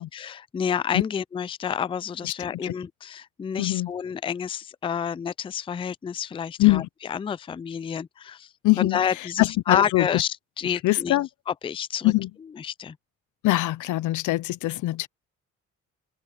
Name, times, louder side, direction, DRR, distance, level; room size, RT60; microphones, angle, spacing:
voice 1, 0.0-8.5 8.8-11.2 11.5-12.1 12.6-13.0, left 8 dB, 20° left, 0.3 m, -29 dB
voice 2, 3.6-3.9 6.6-6.9 8.6-9.0 9.4-10.2 10.8-11.3 12.0-12.3 13.4-15.1, left 18 dB, 80° left, 0.7 m, -22 dB
open air
cardioid pair, 90°, 30 cm